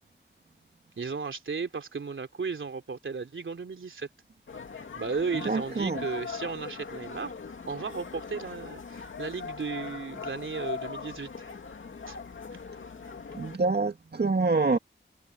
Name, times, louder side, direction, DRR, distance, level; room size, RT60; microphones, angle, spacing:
voice 1, 1.0-4.1 5.0-7.3 7.6-11.3 12.1-12.2, right 5 dB, 85° right, 3.0 m, -35 dB
sound 1, 4.5-13.6, left 5 dB, 85° left, 2.4 m, -40 dB
voice 2, 5.5-6.0 13.4-14.8, right 3 dB, 55° right, 2.4 m, -26 dB
wide cardioid pair, 95°, 20 cm